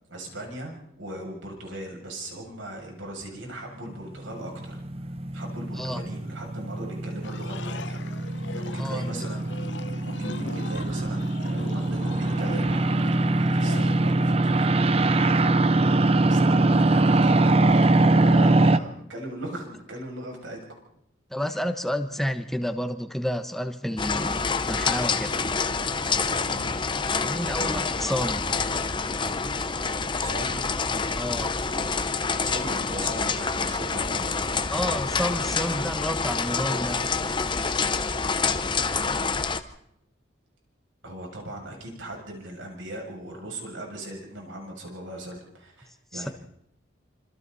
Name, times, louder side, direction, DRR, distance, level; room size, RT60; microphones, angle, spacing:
voice 1, 0.1-4.8 5.3-8.0 8.6-9.5 10.0-13.0 13.3-15.4 16.1-20.6 21.4-21.7 26.4-26.8 27.5-27.9 30.2-30.8 32.4-34.4 41.0-46.3, right 1 dB, 85° right, 1 dB, 7.2 m, -38 dB
sound 1, 4.2-18.8, right 2 dB, 30° right, 0.7 m, -23 dB
sound 2, 7.2-14.1, left 3 dB, 70° left, 0.8 m, -40 dB
voice 2, 8.8-9.2 21.3-25.4 27.2-28.5 31.1-31.6 34.7-37.1 46.1-46.3, equal, ahead, 8 dB, 1.2 m, -30 dB
sound 3, 24.0-39.6, left 4 dB, 25° left, 0.9 m, -27 dB
26.5 x 26.5 x 4.2 m, 0.76 s
head